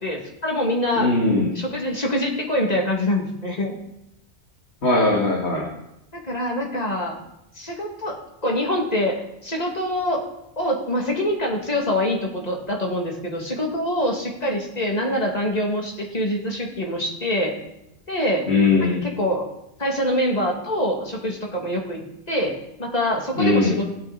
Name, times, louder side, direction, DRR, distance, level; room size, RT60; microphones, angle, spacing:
voice 1, 0.0-1.1 1.5-3.7 6.1-7.2 7.6-8.2 8.4-10.2 10.6-17.6 18.1-18.5 18.8-19.5 19.8-23.8, left 1 dB, 35° left, -1 dB, 2.6 m, -25 dB
voice 2, 1.0-1.5 4.8-5.6 18.5-19.0 23.4-23.7, left 3 dB, 70° left, -3 dB, 2.7 m, -19 dB
20.0 x 8.4 x 4.2 m, 0.87 s
omnidirectional pair, 1.2 m